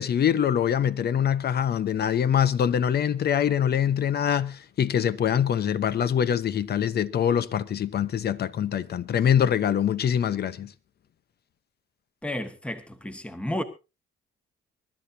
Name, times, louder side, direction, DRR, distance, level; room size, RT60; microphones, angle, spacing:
voice 1, 0.0-10.7, left 9 dB, 55° left, 0.9 m, -24 dB
voice 2, 12.2-13.6, left 1 dB, 5° left, 1.6 m, -32 dB
23.5 x 12.0 x 2.7 m
cardioid pair, 90°, 20 cm